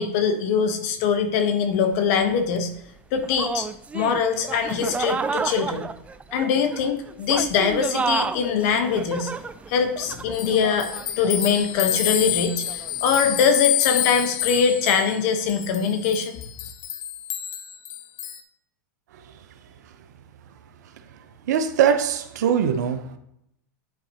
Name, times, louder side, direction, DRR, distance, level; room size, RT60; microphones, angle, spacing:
voice 1, 0.0-2.7 3.1-3.7 3.9-5.9 6.3-9.3 9.7-10.9 11.2-16.4, left 6 dB, 60° left, 1.1 m, -22 dB
sound 1, 1.7-1.8 2.6-2.7 3.2-13.0, right 5 dB, 15° right, 0.3 m, -31 dB
sound 2, 10.3-18.4, left 12 dB, 40° left, 0.7 m, -28 dB
voice 2, 21.5-23.2, right 8 dB, 75° right, 0.7 m, -22 dB
10.0 x 4.2 x 2.9 m
hypercardioid pair, 110°, 9 cm